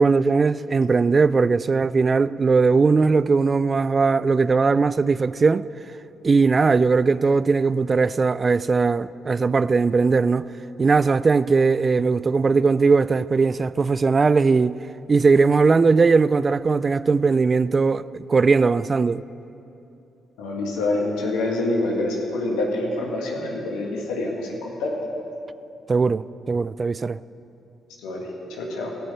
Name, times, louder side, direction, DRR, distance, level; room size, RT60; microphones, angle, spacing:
voice 1, 0.0-5.7 6.2-10.4 10.8-14.8 15.1-19.2 25.9-27.2, right 4 dB, 40° right, 0.3 m, -19 dB
voice 2, 20.4-24.9 28.0-28.9, left 2 dB, 80° left, 1.8 m, -26 dB
16.0 x 6.4 x 8.6 m
hypercardioid pair, 45°, 0 cm